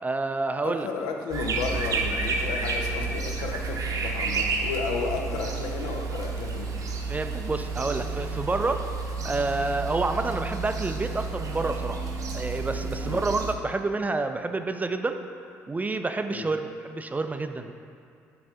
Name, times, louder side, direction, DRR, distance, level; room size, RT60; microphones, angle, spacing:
voice 1, 0.0-0.9 7.1-8.9 9.2-12.0 12.3-15.2 15.7-17.7, right 3 dB, 20° right, 7 dB, 0.4 m, -28 dB
voice 2, 0.6-6.7 13.0-13.2 16.3-16.5, left 4 dB, 70° left, 2 dB, 0.6 m, -33 dB
sound 1, 1.3-13.6, right 4 dB, 50° right, 0.7 m, -31 dB
7.6 x 4.0 x 3.6 m, 2.4 s
hypercardioid pair, 50°, 7 cm